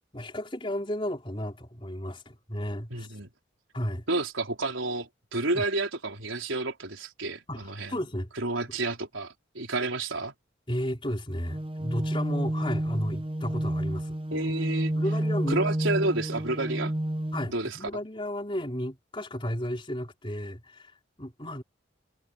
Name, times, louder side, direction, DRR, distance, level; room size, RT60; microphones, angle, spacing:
voice 1, 0.1-3.1 3.7-4.0 5.5-5.6 7.5-8.3 10.7-14.2 14.9-15.6 17.3-20.9 21.2-21.6, equal, 25° left, 4.5 m, -33 dB
voice 2, 2.9-3.3 4.1-7.9 8.4-10.3 14.3-14.9 15.5-16.9 17.5-17.8, right 2 dB, 85° right, 4.3 m, -30 dB
sound 1, 11.5-17.5, right 1 dB, 25° right, 0.9 m, -30 dB
head